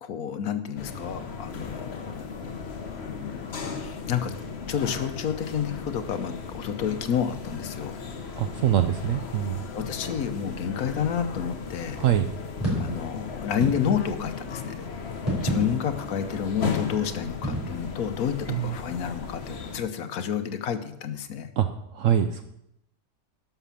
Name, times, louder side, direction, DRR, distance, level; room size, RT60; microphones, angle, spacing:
voice 1, 0.0-2.2 2.9-3.5 3.8-4.3 4.7-8.0 9.7-12.0 12.8-14.9 15.4-21.5, left 8 dB, 75° left, 9 dB, 1.3 m, -30 dB
sound 1, 0.8-19.8, left 5 dB, 45° left, 1.2 m, -36 dB
voice 2, 8.4-9.6 12.0-12.3 18.5-18.7 21.6-21.7 21.9-22.4, right 10 dB, 65° right, 9 dB, 0.9 m, -23 dB
sound 2, 12.3-13.0 13.6-14.2 15.1-16.1 17.4-17.8, right 1 dB, 25° left, 5.3 m, -29 dB
11.5 x 5.9 x 7.1 m, 0.78 s
omnidirectional pair, 1.6 m